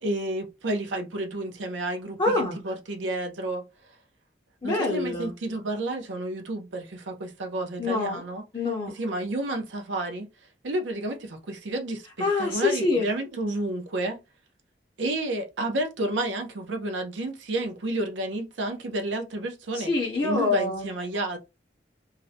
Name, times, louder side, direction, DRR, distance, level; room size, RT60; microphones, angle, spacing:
voice 1, 0.0-3.6 4.6-8.4 9.0-10.3 10.6-14.2 15.0-19.9 20.2-21.4, right 1 dB, 80° right, 0.6 m, -31 dB
voice 2, 2.2-2.6 4.6-5.3 7.8-8.2 8.5-8.9 12.2-13.1 19.7-20.9, left 3 dB, 30° left, 0.5 m, -25 dB
2.4 x 2.1 x 2.6 m
head